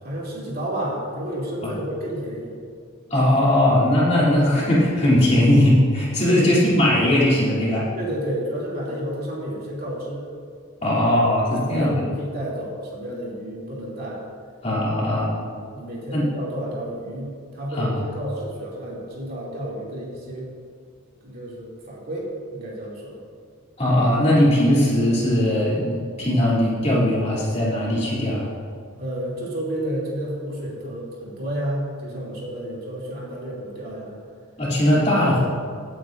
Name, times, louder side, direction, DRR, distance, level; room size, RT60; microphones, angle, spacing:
voice 1, 0.0-2.6 6.3-6.5 7.9-10.3 10.9-11.0 11.6-14.2 15.2-20.5 21.2-23.2 29.0-34.2, equal, 45° right, -5 dB, 2.8 m, -31 dB
voice 2, 3.1-7.9 10.8-12.0 14.6-15.3 16.1-16.2 17.7-17.9 23.8-28.5 34.6-35.5, left 1 dB, 30° left, -7 dB, 2.9 m, -19 dB
17.0 x 9.0 x 2.6 m, 2.1 s
head